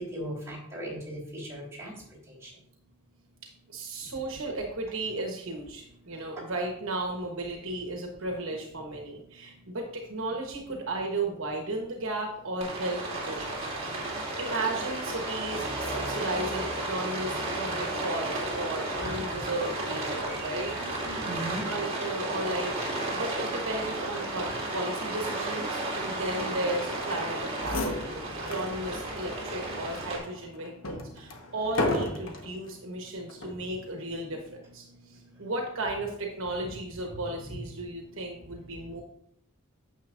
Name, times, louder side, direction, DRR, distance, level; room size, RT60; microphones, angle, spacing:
voice 1, 0.1-1.9 21.2-21.6, right 1 dB, 10° right, -5 dB, 3.5 m, -37 dB
voice 2, 3.7-21.1 21.7-22.8 23.1-28.2 28.5-39.0, right 2 dB, 65° right, 1 dB, 1.2 m, -35 dB
Rain, 12.6-30.2, right 2 dB, 30° right, 2.2 m, -33 dB
sound 1, 27.3-27.4 27.6-28.7 29.2-29.3 29.9-32.5 33.3-33.7, left 1 dB, 65° left, 1.2 m, -32 dB
9.4 x 7.0 x 2.5 m, 0.71 s
head